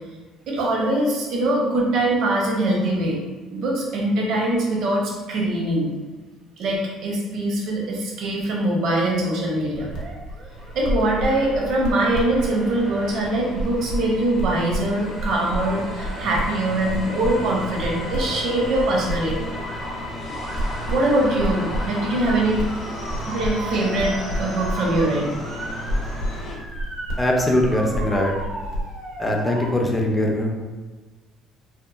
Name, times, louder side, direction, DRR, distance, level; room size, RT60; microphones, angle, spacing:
voice 1, 0.5-3.2 3.5-5.9 6.6-9.9 10.7-19.4 20.8-22.6 23.2-25.3, right 1 dB, 60° right, -2 dB, 0.6 m, -22 dB
sound 1, 9.7-29.0, equal, 75° left, 0.7 m, -31 dB
Motor vehicle (road) / Siren, 9.7-10.7 11.0-11.5 11.9-13.2 15.1-15.7 16.0-19.0 19.4-19.9 20.3-29.7, right 1 dB, 80° right, 0.9 m, -37 dB
sound 2, 10.5-26.6, left 1 dB, 40° left, 0.7 m, -35 dB
voice 2, 27.2-28.3 29.2-30.6, left 1 dB, 5° left, -1 dB, 0.4 m, -21 dB
2.8 x 2.3 x 2.4 m, 1.3 s
cardioid pair, 150°, 0 cm